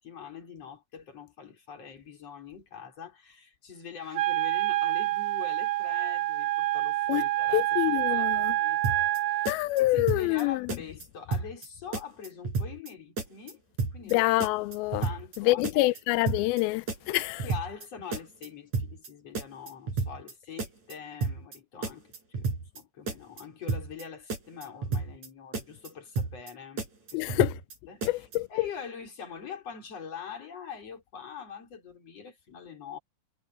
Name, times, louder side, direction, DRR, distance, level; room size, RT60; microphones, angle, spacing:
voice 1, 0.0-13.6 13.9-14.3 15.0-16.0 17.1-27.4 27.9-33.0, left 7 dB, 45° left, 5.5 m, -44 dB
Wind instrument woodwind instrument, 4.1-9.5, right 16 dB, 70° right, 2.4 m, -27 dB
voice 2, 7.5-8.6 9.5-10.7 14.1-15.0 15.4-17.4 27.1-27.5 28.1-28.5, left 19 dB, 90° left, 2.4 m, -26 dB
sound 1, 8.8-9.2 9.5-10.4 10.7-11.1 11.3-11.7 11.9-12.9 13.2-13.5 13.8-14.1 14.4-15.4 15.6-16.0 16.3-16.6 16.9-17.9 18.1-18.5 18.7-19.1 19.4-20.3 20.6-21.0 21.2-21.6 21.8-22.8 23.1-23.4 23.7-24.0 24.3-25.3 25.5-25.9 26.2-26.5 26.8-27.8 28.0-28.4, right 4 dB, 50° right, 6.2 m, -32 dB
omnidirectional pair, 4.3 m